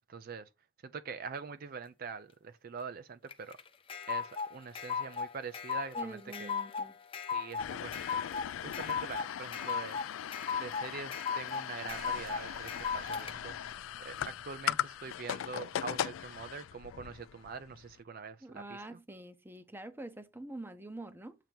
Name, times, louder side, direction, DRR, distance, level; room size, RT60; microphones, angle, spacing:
voice 1, 0.1-0.5 0.8-3.6 4.1-6.5 7.3-10.1 10.5-13.6 14.0-18.8, right 5 dB, 45° right, 0.4 m, -44 dB
sound 1, 3.3-13.3, left 6 dB, 25° left, 0.5 m, -37 dB
voice 2, 5.9-7.0 18.4-21.4, right 1 dB, 10° right, 0.7 m, -45 dB
sound 2, 7.6-17.9, left 10 dB, 80° left, 0.3 m, -39 dB
sound 3, 11.9-15.9 16.2-16.3, right 2 dB, 80° right, 3.0 m, -53 dB
7.5 x 2.8 x 5.1 m
head